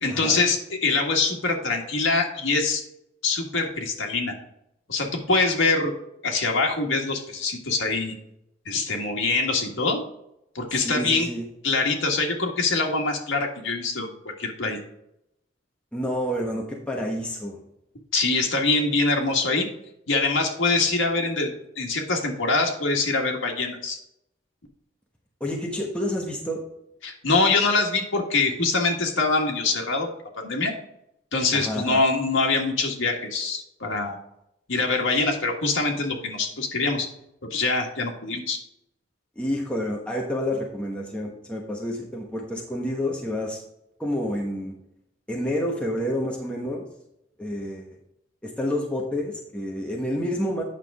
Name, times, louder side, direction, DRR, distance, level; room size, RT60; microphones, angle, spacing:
voice 1, 0.0-2.8 3.2-4.3 4.9-5.9 6.2-8.1 8.6-10.0 10.5-11.3 11.6-14.1 14.4-14.8 18.1-19.7 20.1-21.5 21.8-24.0 27.0-30.1 30.4-30.7 31.3-34.2 34.7-37.1 37.5-38.6, left 3 dB, 85° left, 1 dB, 1.6 m, -24 dB
voice 2, 10.7-11.4 15.9-17.6 25.4-26.6 31.5-32.0 39.4-43.6 44.0-44.7 45.3-46.8 47.4-48.0 48.4-50.6, equal, 5° left, -2 dB, 1.1 m, -29 dB
9.0 x 6.0 x 3.5 m, 0.81 s
head